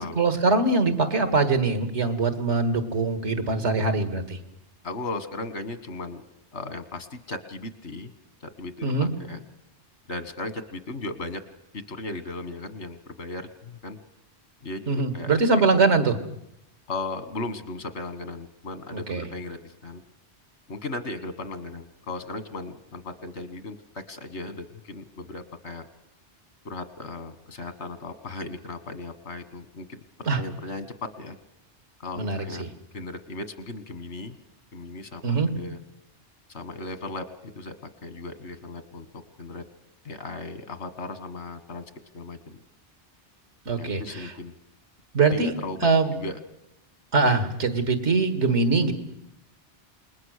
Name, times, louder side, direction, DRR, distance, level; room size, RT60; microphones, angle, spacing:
voice 1, 0.0-4.4 8.8-9.1 14.9-16.2 18.9-19.3 30.3-30.4 32.2-32.7 35.2-35.5 43.7-44.3 45.1-45.5 45.8-46.1 47.1-48.9, right 3 dB, 85° right, 8 dB, 2.2 m, -23 dB
voice 2, 4.8-6.2 6.5-8.1 8.4-9.4 10.1-11.4 11.7-14.0 14.6-15.3 16.9-20.0 20.7-25.9 26.6-30.0 30.3-31.4 32.0-32.7 32.9-34.4 34.7-35.2 35.5-35.8 36.5-37.7 38.0-39.1 39.4-39.6 40.0-41.8 42.1-42.6 43.8-44.5 45.3-46.4, left 2 dB, 80° left, 10 dB, 1.9 m, -36 dB
28.0 x 20.5 x 6.5 m, 0.83 s
omnidirectional pair, 1.1 m